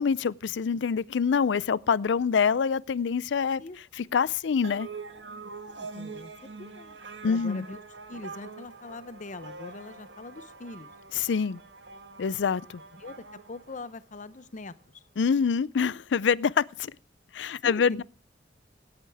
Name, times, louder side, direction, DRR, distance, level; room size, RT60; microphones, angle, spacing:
voice 1, 0.0-3.6 4.1-4.9 7.2-7.7 11.2-11.6 12.2-12.8 15.2-16.9 17.3-18.0, left 6 dB, 90° left, 0.4 m, -25 dB
sound 1, 4.6-14.4, right 4 dB, 90° right, 1.7 m, -44 dB
voice 2, 5.8-6.3 6.6-7.0 7.2-7.8 8.1-10.9 12.9-15.0 17.6-18.0, left 2 dB, 45° left, 0.7 m, -42 dB
18.0 x 8.8 x 3.4 m
head